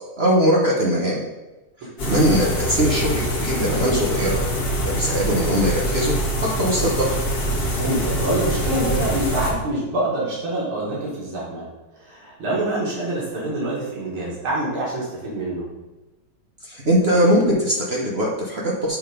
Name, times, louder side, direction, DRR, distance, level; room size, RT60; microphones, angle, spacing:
voice 1, 0.2-1.2 2.0-4.4 4.8-6.2 6.6-7.1 16.6-19.0, equal, 40° right, -3 dB, 0.9 m, -20 dB
sound 1, 2.0-9.5, equal, 50° left, 1.8 m, -24 dB
voice 2, 7.8-11.7 12.0-15.7, right 1 dB, 90° right, -5 dB, 2.9 m, -26 dB
7.8 x 3.7 x 5.1 m, 1.1 s
omnidirectional pair, 2.3 m